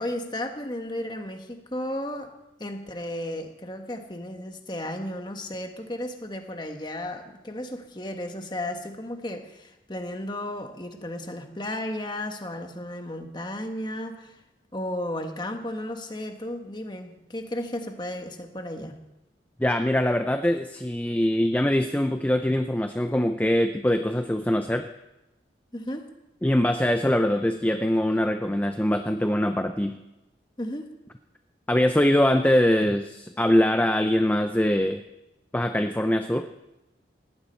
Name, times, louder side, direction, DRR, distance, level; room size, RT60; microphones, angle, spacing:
voice 1, 0.0-2.3 2.6-14.4 14.7-18.9 25.7-26.1 30.6-30.9, left 1 dB, 25° left, 5 dB, 1.3 m, -34 dB
voice 2, 19.6-24.9 26.4-30.0 31.7-35.0 35.5-36.5, left 1 dB, 10° left, 7 dB, 0.5 m, -23 dB
18.5 x 14.5 x 4.5 m, 0.97 s
head